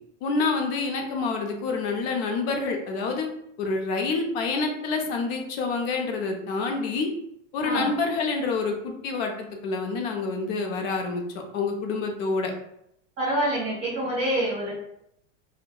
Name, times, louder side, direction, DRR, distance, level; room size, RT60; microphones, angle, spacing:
voice 1, 0.2-3.3 3.6-7.1 7.5-11.2 11.5-12.5, left 4 dB, 50° left, 3 dB, 0.6 m, -27 dB
voice 2, 13.2-14.7, right 1 dB, 30° right, -9 dB, 1.1 m, -26 dB
2.6 x 2.1 x 2.2 m, 0.77 s
supercardioid pair, 150°, 38 cm